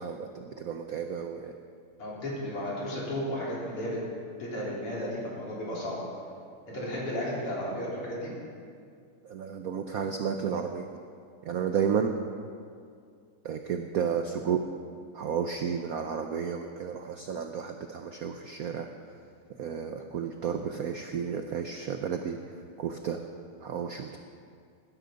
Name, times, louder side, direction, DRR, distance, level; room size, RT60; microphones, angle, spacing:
voice 1, 0.0-1.6 9.2-11.0 11.4-12.1 13.4-14.6 15.1-19.2 19.5-23.2 23.6-24.2, right 7 dB, 80° right, 5 dB, 0.8 m, -32 dB
voice 2, 2.0-4.0 4.4-6.0 6.7-8.3, equal, 90° left, -6 dB, 4.5 m, -33 dB
19.5 x 10.5 x 5.2 m, 2.3 s
omnidirectional pair, 2.4 m